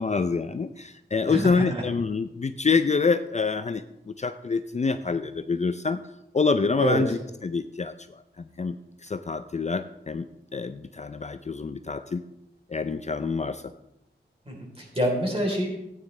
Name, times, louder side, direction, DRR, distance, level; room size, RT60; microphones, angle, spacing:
voice 1, 0.0-6.0 6.3-7.9 8.6-10.3 10.5-12.2 12.7-13.6, left 4 dB, 35° left, 9 dB, 0.4 m, -26 dB
voice 2, 1.3-1.8 6.8-7.0 14.5-15.8, equal, 30° right, -1 dB, 3.7 m, -27 dB
15.0 x 9.2 x 3.3 m, 0.86 s
wide cardioid pair, 90°, 19 cm